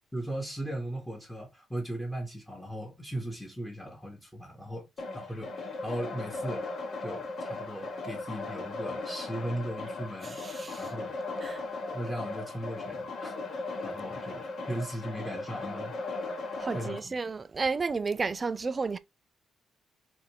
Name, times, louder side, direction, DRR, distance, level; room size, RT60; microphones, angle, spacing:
voice 1, 0.1-4.9 5.1-6.7 7.0-11.2 11.9-13.4 13.8-16.0 16.7-17.1, right 1 dB, 5° left, 1.1 m, -37 dB
sound 1, 5.0-17.0, left 3 dB, 60° left, 1.0 m, -37 dB
voice 2, 10.2-10.9 11.4-11.6 16.6-19.0, right 4 dB, 30° right, 0.3 m, -32 dB
4.1 x 2.5 x 2.9 m
cardioid pair, 110°, 0 cm